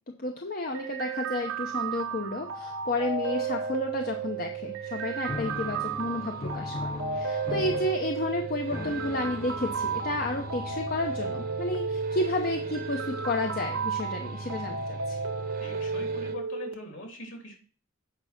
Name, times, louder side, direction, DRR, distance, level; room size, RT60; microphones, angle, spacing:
voice 1, 0.1-15.2, left 2 dB, 45° left, 3 dB, 0.9 m, -31 dB
sound 1, 0.7-16.7, right 5 dB, 75° right, 1.1 m, -33 dB
sound 2, 1.5-16.3, right 3 dB, 45° right, 1.0 m, -42 dB
sound 3, 5.3-11.7, left 3 dB, 25° left, 0.5 m, -40 dB
voice 2, 15.6-17.6, left 2 dB, 60° left, 1 dB, 3.2 m, -42 dB
8.7 x 5.5 x 5.9 m, 0.43 s
head